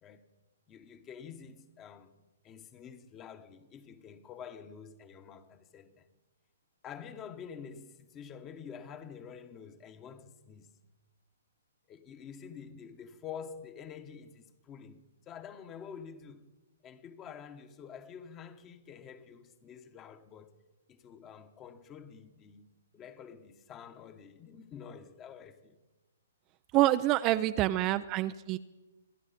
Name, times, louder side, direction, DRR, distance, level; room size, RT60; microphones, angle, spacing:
voice 1, 0.7-2.1 2.4-6.0 6.8-10.7 11.9-16.5 16.8-20.5 20.9-22.6 22.9-25.8, left 7 dB, 20° left, 1.2 m, -48 dB
voice 2, 26.7-28.6, right 15 dB, 30° right, 0.4 m, -27 dB
27.0 x 11.0 x 4.2 m
hypercardioid pair, 145°, 0 cm